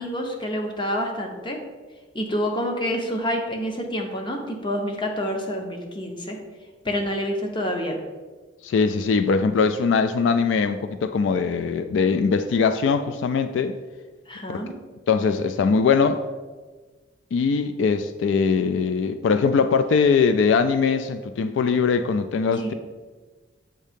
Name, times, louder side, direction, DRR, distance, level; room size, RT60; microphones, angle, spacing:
voice 1, 0.0-1.6 2.1-6.4 6.8-8.0 14.3-14.7 22.5-22.7, equal, 25° left, 2 dB, 0.8 m, -28 dB
voice 2, 8.6-13.8 14.5-14.7 15.1-16.2 17.3-22.7, left 5 dB, 80° left, 10 dB, 0.3 m, -21 dB
7.3 x 2.7 x 5.1 m, 1.3 s
head